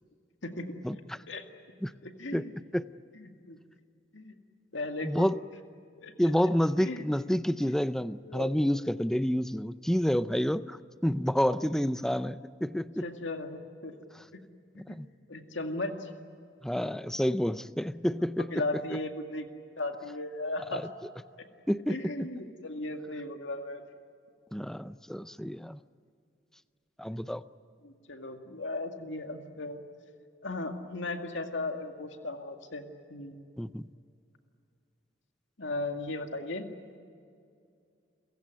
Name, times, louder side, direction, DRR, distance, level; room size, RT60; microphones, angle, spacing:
voice 1, 0.4-0.7 1.3-1.4 2.0-2.5 3.1-3.6 4.1-4.3 4.7-5.3 6.0-6.1 6.8-7.0 7.6-7.8 8.2-8.6 13.0-13.9 14.9-16.1 18.5-19.5 19.8-20.9 21.4-21.5 21.9-23.8 27.1-27.2 27.8-29.8 30.4-32.8 33.1-33.4 35.6-36.7, left 2 dB, 80° left, 2.1 m, -36 dB
voice 2, 5.0-5.4 6.2-13.1 14.9-15.1 16.6-18.5 20.7-20.8 21.7-22.0 24.5-25.8 27.0-27.4 33.6-33.8, equal, 5° left, 0.5 m, -29 dB
29.5 x 16.5 x 9.4 m
head